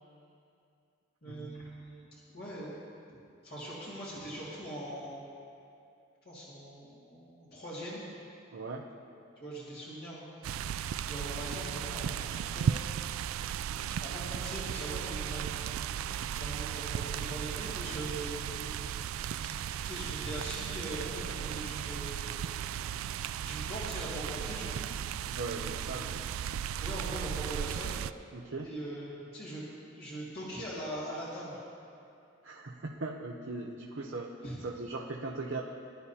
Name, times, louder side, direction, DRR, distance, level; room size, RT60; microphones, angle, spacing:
voice 1, 1.2-2.1 2.3-2.7 3.4-5.2 6.2-8.0 9.4-10.7 11.0-12.7 13.9-15.8 16.3-18.8 19.8-22.4 23.4-24.9 26.8-27.9 28.6-29.6 29.9-31.6 34.4-34.6, right 1 dB, 50° left, -9 dB, 2.2 m, -41 dB
voice 2, 8.5-8.9 13.8-13.9 25.4-26.1 28.3-28.7 32.4-34.3 34.6-35.6, right 3 dB, 70° right, -1 dB, 0.7 m, -39 dB
sound 1, 10.4-28.1, right 9 dB, 90° right, 0.3 m, -36 dB
20.5 x 11.5 x 2.8 m, 2.5 s
head